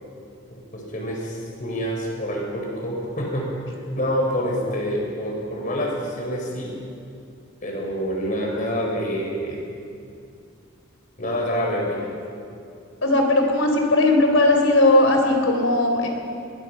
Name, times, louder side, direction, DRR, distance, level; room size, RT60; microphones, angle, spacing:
voice 1, 0.5-3.5 4.0-6.7 7.6-9.6 11.2-12.1, equal, 40° left, 0 dB, 4.9 m, -27 dB
voice 2, 13.0-16.1, left 2 dB, 75° left, 3 dB, 3.8 m, -18 dB
22.0 x 21.0 x 5.8 m, 2.4 s
head